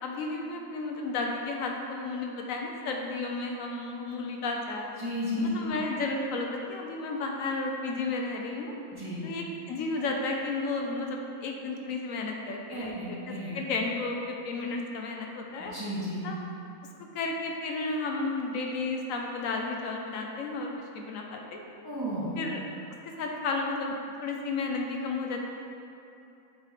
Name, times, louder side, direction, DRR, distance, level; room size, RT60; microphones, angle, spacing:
voice 1, 0.0-4.9 5.4-8.7 9.2-15.7 16.2-16.4 17.1-21.6 22.4-22.6 23.0-25.5, left 3 dB, 80° left, 1 dB, 1.0 m, -33 dB
voice 2, 5.0-5.8 8.9-9.2 12.7-13.5 15.6-16.2 21.8-22.4, equal, 20° right, -9 dB, 1.0 m, -33 dB
7.1 x 3.4 x 4.1 m, 2.7 s
omnidirectional pair, 1.4 m